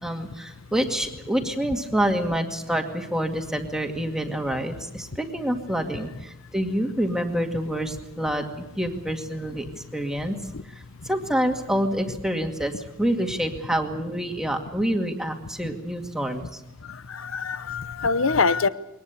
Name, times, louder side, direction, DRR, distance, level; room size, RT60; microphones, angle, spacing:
voice 1, 0.0-10.4 10.6-16.6, right 1 dB, 5° right, 3 dB, 2.2 m, -27 dB
voice 2, 16.8-18.7, left 4 dB, 70° left, 15 dB, 0.8 m, -24 dB
22.5 x 19.5 x 8.4 m, 0.91 s
head